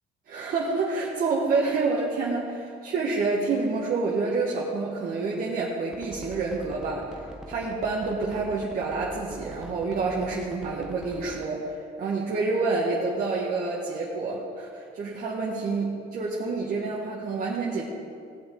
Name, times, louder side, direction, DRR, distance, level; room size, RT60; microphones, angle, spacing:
voice 1, 0.3-17.8, right 3 dB, 55° right, -5 dB, 1.7 m, -28 dB
sound 1, 5.9-11.5, right 1 dB, 5° right, 0.9 m, -43 dB
17.5 x 7.1 x 4.0 m, 2.3 s
cardioid pair, 110°, 17 cm